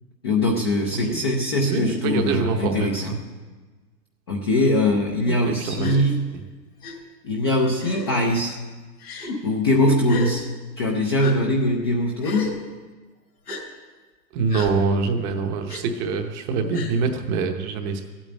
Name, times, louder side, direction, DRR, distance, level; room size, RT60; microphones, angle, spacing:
voice 1, 0.2-3.1 4.3-6.3 7.2-8.6 9.4-10.5 10.8-12.5, left 1 dB, 15° left, 0 dB, 0.5 m, -22 dB
voice 2, 1.6-3.1 5.3-6.0 14.3-18.0, right 4 dB, 15° right, 5 dB, 0.8 m, -25 dB
Gasp, 5.8-6.0 6.8-6.9 7.8-8.2 9.0-9.3 10.1-10.3 11.2-11.3 12.2-12.5 13.5-13.6 14.5-14.7 15.7-15.8 16.7-16.9, left 1 dB, 70° left, 4.5 m, -33 dB
14.5 x 8.8 x 8.7 m, 1.3 s
hypercardioid pair, 155°, 50 cm